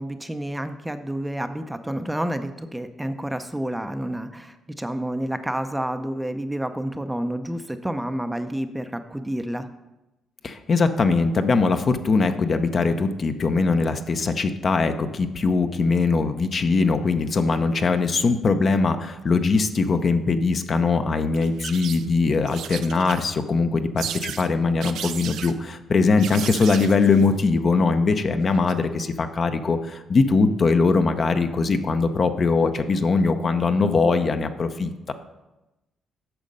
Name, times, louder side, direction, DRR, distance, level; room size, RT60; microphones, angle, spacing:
voice 1, 0.0-9.7, right 1 dB, 5° right, 8 dB, 0.5 m, -29 dB
voice 2, 10.4-35.1, left 4 dB, 45° left, 8 dB, 0.7 m, -21 dB
sound 1, 21.4-22.2 22.5-23.4 24.0-24.5 24.8-25.5 26.2-27.3 28.5-28.7, right 9 dB, 80° right, 0.6 m, -34 dB
9.0 x 6.4 x 5.4 m, 1.0 s
cardioid pair, 90°, 0 cm